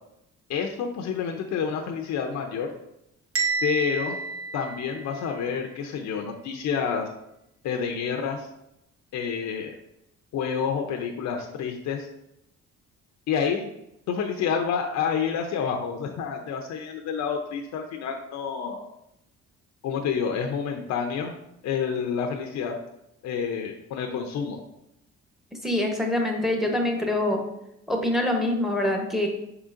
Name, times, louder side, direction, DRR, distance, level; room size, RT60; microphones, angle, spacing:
voice 1, 0.5-2.7 3.6-4.2 4.5-7.1 7.6-8.5 9.1-9.7 10.3-12.1 13.3-13.7 14.1-18.8 19.8-21.4 21.6-22.8 23.2-24.6, left 6 dB, 70° left, 3 dB, 0.5 m, -28 dB
Bell, 3.4-5.4, right 4 dB, 45° right, 0.9 m, -30 dB
voice 2, 25.6-27.4 27.9-29.3, left 1 dB, ahead, 2 dB, 0.8 m, -25 dB
4.9 x 3.8 x 2.4 m, 0.83 s
cardioid pair, 90°, 30 cm